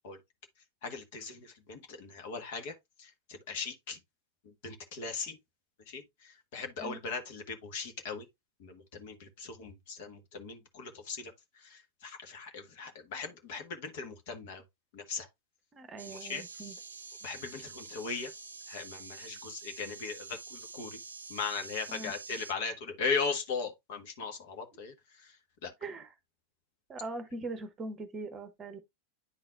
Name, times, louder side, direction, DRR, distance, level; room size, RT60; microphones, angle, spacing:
voice 1, 0.8-4.0 4.4-5.4 5.9-8.3 8.6-14.6 14.9-15.3 16.1-16.7 17.2-18.3 18.7-21.0 21.3-25.3 25.6-25.7, left 5 dB, 50° left, 1.3 m, -39 dB
voice 2, 15.7-16.7 21.9-22.1 25.8-26.1 26.9-28.8, right 2 dB, 25° right, 0.9 m, -41 dB
sound 1, 16.0-22.5, right 4 dB, 75° right, 0.5 m, -47 dB
10.0 x 4.0 x 2.5 m
figure-of-eight pair, 90°, 0 cm